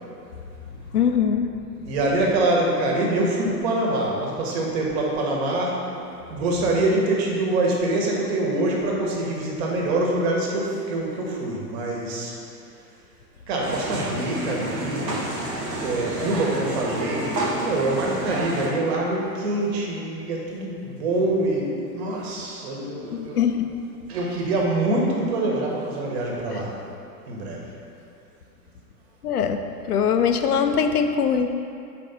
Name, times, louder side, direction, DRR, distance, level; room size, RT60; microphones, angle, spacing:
voice 1, 0.9-1.5 23.1-23.7 29.2-31.5, left 7 dB, 70° left, 7 dB, 0.6 m, -22 dB
voice 2, 1.8-12.3 13.5-15.3 15.8-23.5 24.1-26.7 27.3-27.7, right 2 dB, 40° right, -2 dB, 1.2 m, -25 dB
sound 1, 13.6-18.7, right 1 dB, 80° right, 1.1 m, -29 dB
5.1 x 4.2 x 5.3 m, 2.6 s
figure-of-eight pair, 100°, 48 cm